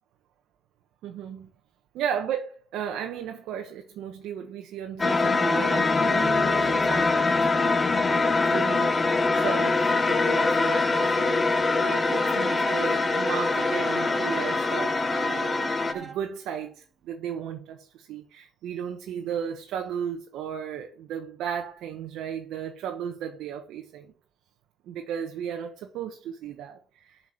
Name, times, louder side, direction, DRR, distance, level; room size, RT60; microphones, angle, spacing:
voice 1, 1.0-1.5 1.9-7.8 8.1-24.1 24.9-27.2, right 8 dB, 85° right, 1.1 m, -35 dB
sound 1, 5.0-15.9, left 3 dB, 30° left, 1.1 m, -23 dB
Bowed string instrument, 12.0-16.2, right 4 dB, 35° right, 2.9 m, -37 dB
7.8 x 5.7 x 7.4 m
cardioid pair, 90°, 0 cm